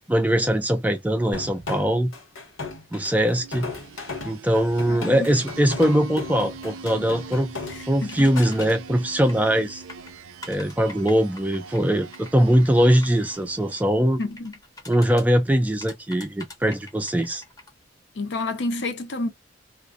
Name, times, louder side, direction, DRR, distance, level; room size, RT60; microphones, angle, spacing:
voice 1, 0.1-2.1 2.9-3.7 4.2-7.5 7.9-9.8 10.5-14.2 14.9-17.4, equal, 10° right, 0.3 m, -21 dB
sound 1, 1.3-8.7, left 3 dB, 90° left, 1.1 m, -36 dB
sound 2, 3.2-14.0, right 5 dB, 85° right, 0.4 m, -42 dB
voice 2, 4.9-5.3 7.7-8.4 14.2-14.5 18.1-19.3, left 2 dB, 60° left, 0.6 m, -30 dB
sound 3, 8.1-8.8 9.3-9.6 9.9-13.2 14.2-15.3 15.8-17.7, left 2 dB, 20° left, 0.6 m, -43 dB
2.4 x 2.1 x 2.4 m
head